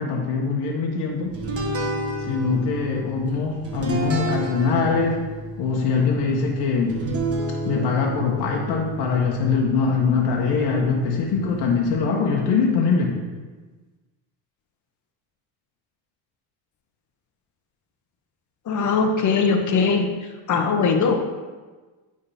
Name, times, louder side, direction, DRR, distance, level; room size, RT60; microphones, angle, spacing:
voice 1, 0.0-1.4 2.2-5.2 5.6-7.0 7.6-13.2, left 5 dB, 65° left, -1 dB, 1.2 m, -22 dB
sound 1, 1.3-12.0, right 1 dB, 35° right, 1.4 m, -31 dB
voice 2, 18.7-20.1 20.5-21.1, left 5 dB, 45° left, 5 dB, 1.0 m, -20 dB
8.9 x 3.9 x 4.2 m, 1.3 s
cardioid pair, 105°, 42 cm